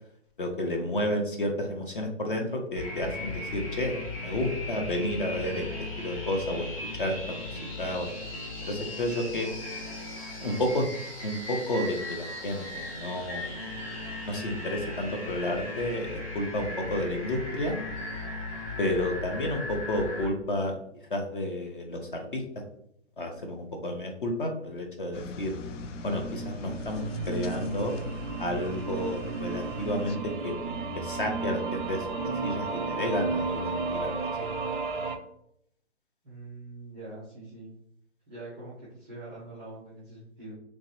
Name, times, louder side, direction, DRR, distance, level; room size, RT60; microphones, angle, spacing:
voice 1, 0.4-5.6 6.0-6.7 6.9-8.1 8.6-9.5 10.4-11.0 11.2-13.5 14.2-17.8 18.8-20.8 21.1-22.4 23.2-25.5 26.0-27.9 28.4-34.3, left 1 dB, 45° left, 3 dB, 0.6 m, -31 dB
sound 1, 2.7-20.3, left 2 dB, 30° left, 1.0 m, -37 dB
sound 2, 25.1-30.2, left 4 dB, 90° left, 0.5 m, -41 dB
sound 3, 25.5-35.2, right 4 dB, 45° right, 0.4 m, -33 dB
voice 2, 36.2-37.7 38.3-40.5, right 2 dB, ahead, -9 dB, 0.6 m, -44 dB
3.4 x 3.1 x 2.9 m, 0.72 s
hypercardioid pair, 170°, 35 cm